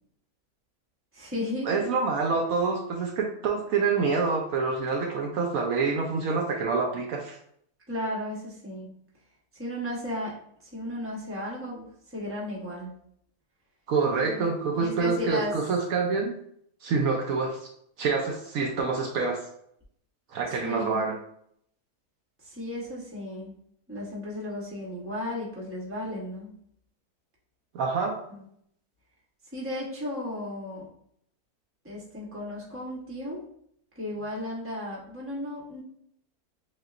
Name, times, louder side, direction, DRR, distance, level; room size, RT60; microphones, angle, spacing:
voice 1, 1.1-1.8 7.9-8.9 9.6-12.9 14.2-15.6 20.5-21.1 22.4-23.5 23.9-26.6 28.3-28.5 29.5-30.9 31.8-33.5 33.9-35.8, left 1 dB, 10° right, -4 dB, 0.8 m, -35 dB
voice 2, 1.7-7.4 13.9-16.4 16.8-17.7 18.0-19.4 20.3-21.2 27.7-28.2, right 4 dB, 70° right, 1 dB, 0.9 m, -27 dB
6.3 x 2.3 x 2.4 m, 0.68 s
omnidirectional pair, 1.6 m